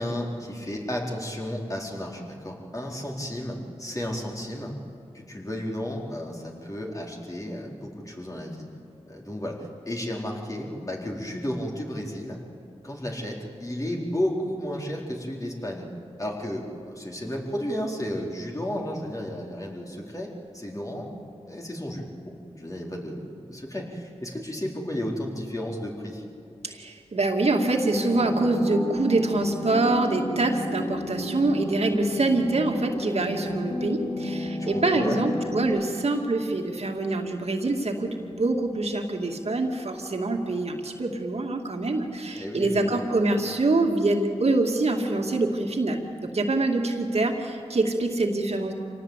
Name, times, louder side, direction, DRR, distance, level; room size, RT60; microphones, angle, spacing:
voice 1, 0.0-4.7 5.1-8.7 9.1-12.4 12.8-15.9 16.2-21.1 21.5-26.2 34.7-35.2 42.3-43.2, equal, 30° left, -1 dB, 4.4 m, -33 dB
voice 2, 26.6-48.7, right 2 dB, 65° right, 3 dB, 2.4 m, -25 dB
sound 1, 27.8-35.6, left 1 dB, 60° left, 4.5 m, -32 dB
26.5 x 18.5 x 8.3 m, 2.5 s
cardioid pair, 60°, 12 cm